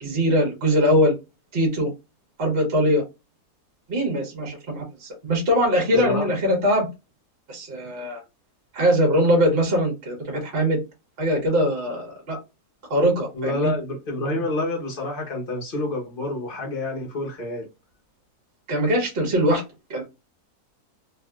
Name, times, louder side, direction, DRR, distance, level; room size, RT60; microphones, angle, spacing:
voice 1, 0.0-1.1 1.5-1.9 2.4-3.0 3.9-6.9 7.5-8.2 8.7-10.8 11.2-12.4 12.9-13.7 18.7-19.6 19.9-20.0, equal, 45° right, 1.2 m, -21 dB
voice 2, 5.9-6.3 13.3-17.7, left 2 dB, 45° left, 0.9 m, -28 dB
3.1 x 2.7 x 2.3 m
omnidirectional pair, 1.6 m